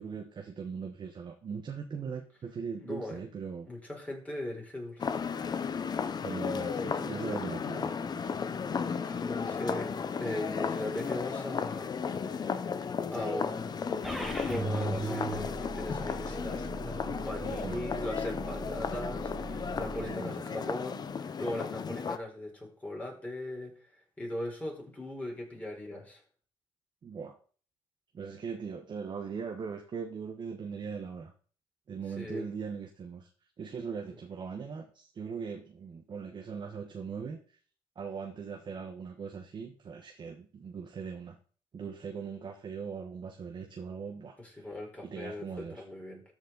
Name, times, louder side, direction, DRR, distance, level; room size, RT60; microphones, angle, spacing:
voice 1, 0.0-3.7 6.2-8.4 17.4-18.1 20.0-20.6 27.0-27.4 28.1-31.3 31.9-33.3 33.6-37.6 37.9-41.4 41.7-44.7 45.0-45.8, right 6 dB, 45° right, 4 dB, 1.2 m, -40 dB
voice 2, 2.8-3.2 3.6-5.1 9.0-12.0 13.1-23.7 24.2-26.2 32.2-32.5 44.4-46.2, left 1 dB, 15° left, -1 dB, 4.4 m, -39 dB
sound 1, 5.0-22.2, left 6 dB, 40° left, 0.8 m, -34 dB
sound 2, 14.0-20.1, right 3 dB, 5° right, 1.8 m, -39 dB
13.0 x 5.2 x 4.0 m, 0.42 s
cardioid pair, 85°, 10 cm